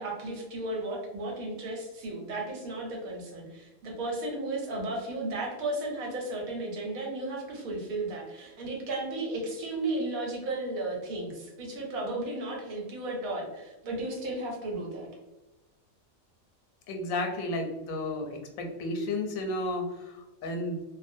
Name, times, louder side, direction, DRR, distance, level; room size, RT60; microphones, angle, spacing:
voice 1, 0.0-15.1, right 2 dB, 90° right, -1 dB, 1.2 m, -34 dB
voice 2, 16.9-20.8, left 2 dB, 90° left, 3 dB, 1.0 m, -33 dB
2.5 x 2.1 x 2.5 m, 1.1 s
omnidirectional pair, 1.4 m